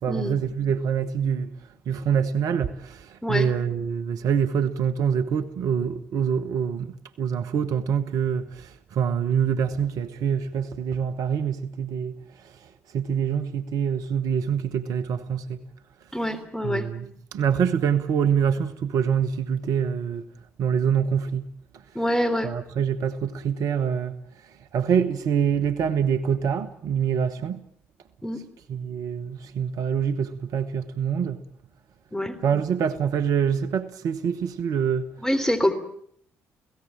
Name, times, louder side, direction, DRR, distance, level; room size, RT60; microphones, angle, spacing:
voice 1, 0.0-15.6 16.0-16.2 16.6-20.3 20.6-21.5 21.7-22.0 22.4-27.6 28.7-31.4 32.4-35.3, right 7 dB, 60° right, 1.1 m, -25 dB
voice 2, 16.1-16.9 21.9-22.5 28.2-28.4 32.1-32.4 35.2-35.7, equal, 5° left, 3.4 m, -25 dB
28.5 x 17.5 x 8.9 m
figure-of-eight pair, 45°, 7 cm